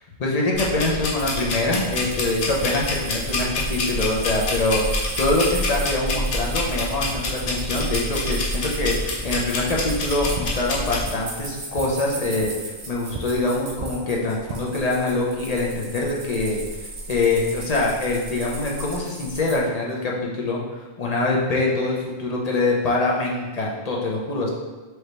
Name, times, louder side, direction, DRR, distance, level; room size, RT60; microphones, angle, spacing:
voice 1, 0.2-12.5 12.9-20.6 21.0-24.5, left 2 dB, 40° left, -2 dB, 0.8 m, -24 dB
sound 1, 0.5-11.0, left 1 dB, 70° left, 1.0 m, -27 dB
sound 2, 1.1-19.6, right 2 dB, 85° right, 1.3 m, -37 dB
sound 3, 9.6-9.8 10.3-10.4 11.0-11.1 11.7-11.8 12.4-12.5 13.1-13.2 13.8-13.9 14.3-14.6, right 5 dB, 55° right, 0.5 m, -33 dB
4.8 x 3.0 x 3.2 m, 1.2 s
omnidirectional pair, 1.0 m